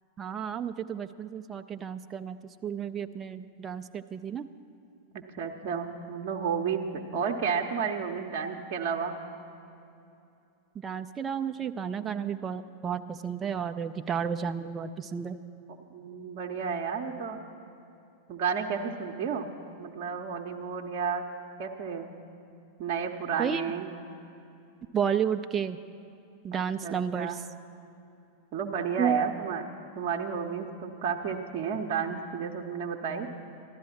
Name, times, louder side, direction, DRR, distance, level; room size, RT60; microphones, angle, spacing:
voice 1, 0.2-2.4 2.6-4.5 10.8-15.4 23.4-23.6 24.9-25.8 26.4-27.4 29.0-29.4, right 7 dB, 20° right, 8 dB, 0.5 m, -31 dB
voice 2, 5.1-9.1 15.9-17.4 18.3-19.5 19.8-21.2 21.6-22.1 22.8-23.9 26.5-27.3 28.5-29.6 30.0-33.3, right 6 dB, 45° right, 2 dB, 0.8 m, -32 dB
14.5 x 12.0 x 5.8 m, 2.7 s
figure-of-eight pair, 90°, 0 cm